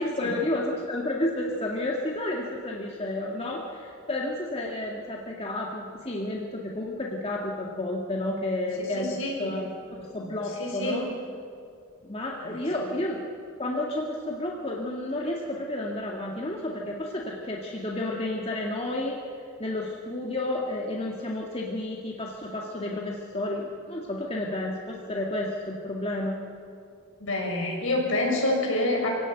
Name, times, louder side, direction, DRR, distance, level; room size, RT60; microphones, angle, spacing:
voice 1, 0.0-9.7 10.0-11.1 12.0-13.2 13.6-19.2 19.6-26.4, left 1 dB, 25° left, -2 dB, 2.0 m, -31 dB
voice 2, 9.0-9.5 10.6-11.0 27.2-29.1, left 1 dB, 60° left, 0 dB, 6.3 m, -27 dB
25.5 x 17.0 x 9.2 m, 2.4 s
head